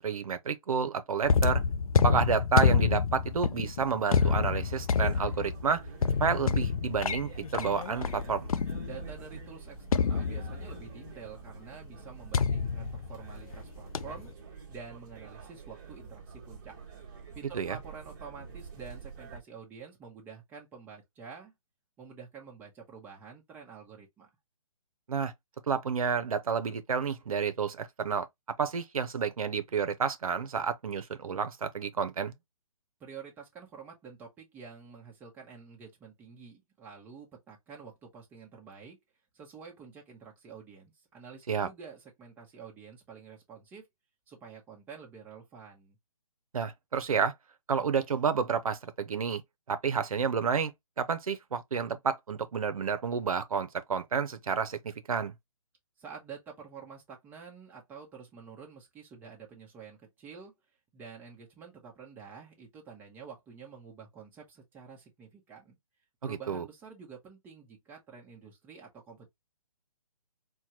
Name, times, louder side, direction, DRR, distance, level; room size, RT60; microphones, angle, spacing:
voice 1, 0.0-1.6 2.0-5.8 6.2-8.5 17.5-17.8 25.1-25.3 25.7-28.3 28.6-32.3 41.5-41.7 46.5-47.3 47.7-49.4 49.7-50.7 51.0-55.3 66.2-66.6, right 6 dB, 80° right, 0.6 m, -30 dB
sound 1, 1.2-9.2 9.9-10.9 12.3-13.6 13.9-14.3, left 6 dB, 75° left, 0.5 m, -28 dB
sound 2, 4.1-19.4, right 5 dB, 35° right, 1.3 m, -48 dB
voice 2, 8.8-14.3 14.7-16.7 17.3-21.5 22.0-24.3 33.0-39.0 39.3-43.9 44.3-46.0 56.0-60.6 60.9-65.8 66.2-69.3, right 6 dB, 10° right, 0.9 m, -48 dB
4.5 x 2.2 x 2.8 m
hypercardioid pair, 150°, 18 cm